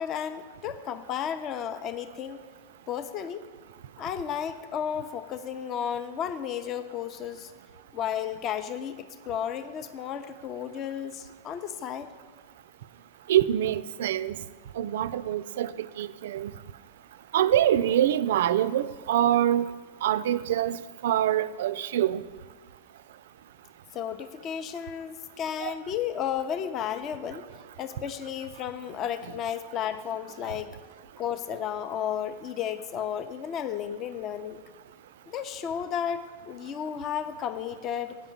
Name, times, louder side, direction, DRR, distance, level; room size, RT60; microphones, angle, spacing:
voice 1, 0.0-2.4 2.9-3.5 4.0-7.5 7.9-12.1 23.9-27.4 27.8-30.8 31.2-34.6 35.3-38.2, left 9 dB, 35° left, 10 dB, 0.6 m, -33 dB
voice 2, 13.3-14.4 14.8-16.5 17.3-19.7 20.0-22.2 25.6-25.7, right 11 dB, 55° right, 16 dB, 0.3 m, -25 dB
8.5 x 6.0 x 8.1 m, 1.5 s
figure-of-eight pair, 90°, 0 cm